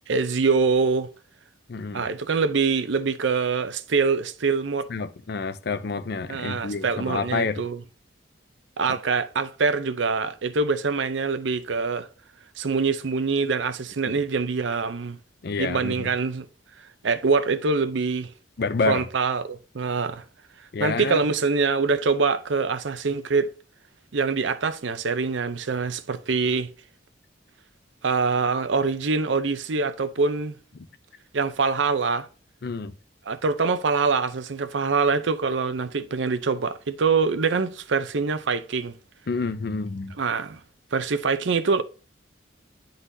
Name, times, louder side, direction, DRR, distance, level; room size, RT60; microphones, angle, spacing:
voice 1, 0.1-1.1 1.9-4.9 6.3-7.8 8.8-12.1 12.6-15.2 15.6-16.5 17.0-18.3 18.9-20.2 20.8-23.5 24.1-26.7 28.0-30.6 31.3-32.3 33.3-38.9 40.2-40.6 40.9-41.8, right 4 dB, 75° right, 0.6 m, -24 dB
voice 2, 1.7-2.1 4.9-7.6 8.9-9.0 14.0-14.2 15.4-16.1 18.6-19.1 20.7-21.2 30.8-30.9 32.6-32.9 39.3-40.2, left 4 dB, 55° left, 0.5 m, -28 dB
9.7 x 4.0 x 2.6 m
head